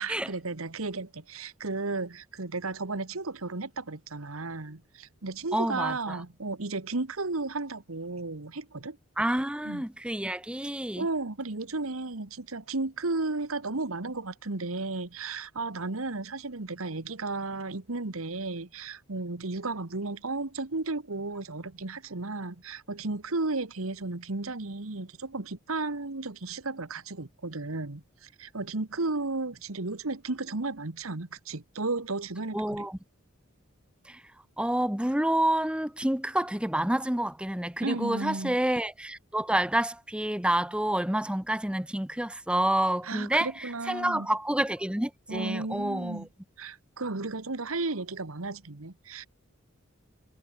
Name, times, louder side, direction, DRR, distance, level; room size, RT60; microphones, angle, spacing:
voice 1, 0.0-9.0 9.6-9.9 10.9-32.9 37.8-38.6 43.0-44.3 45.3-46.3 46.6-49.3, right 3 dB, 85° right, 1.5 m, -34 dB
voice 2, 5.5-6.2 9.2-11.0 32.5-32.9 34.6-43.5 43.9-46.2, right 1 dB, 5° right, 0.8 m, -28 dB
head